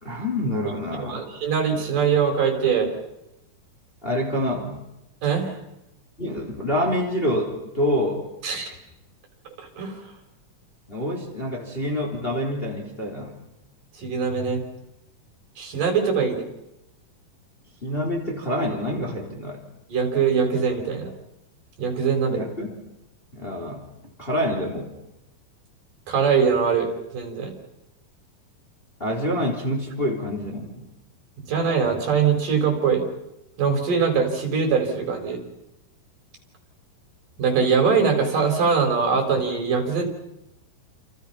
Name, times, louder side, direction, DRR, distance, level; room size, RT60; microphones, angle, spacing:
voice 1, 0.0-1.3 4.0-4.9 6.2-8.3 10.9-13.4 17.8-19.6 22.3-22.7 23.3-23.9 24.2-24.9 29.0-30.9, left 1 dB, 15° left, 1 dB, 3.7 m, -27 dB
voice 2, 1.0-2.9 5.2-5.5 8.4-8.8 9.6-10.0 14.0-14.6 15.6-16.5 19.9-21.1 21.8-22.4 26.1-27.5 31.5-33.1 33.6-35.4 37.4-40.1, right 6 dB, 70° right, 4 dB, 6.6 m, -22 dB
29.0 x 28.5 x 5.8 m, 0.87 s
omnidirectional pair, 3.9 m